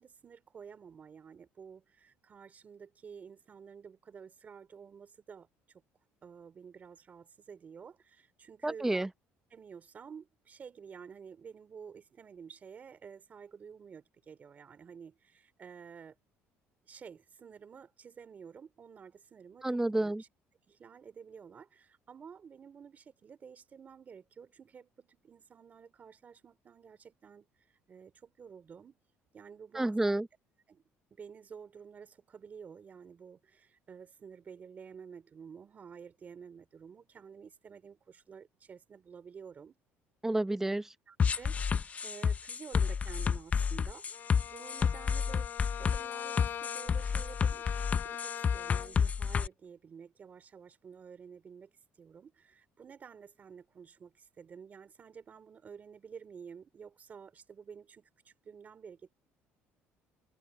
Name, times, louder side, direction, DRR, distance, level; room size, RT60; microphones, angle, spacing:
voice 1, 0.0-5.5 6.2-9.0 9.5-16.2 16.9-20.3 20.7-27.4 27.9-29.0 29.3-30.2 30.7-30.8 31.1-39.8 41.1-47.7 48.0-51.7 52.0-59.1, right 6 dB, 35° right, 2.9 m, -51 dB
voice 2, 8.6-9.1 19.6-20.2 29.7-30.3 40.2-40.9, right 2 dB, 10° right, 0.8 m, -30 dB
sound 1, 41.2-49.5, left 6 dB, 30° left, 0.6 m, -30 dB
Bowed string instrument, 44.1-49.1, left 9 dB, 50° left, 3.8 m, -42 dB
cardioid pair, 125°, 5 cm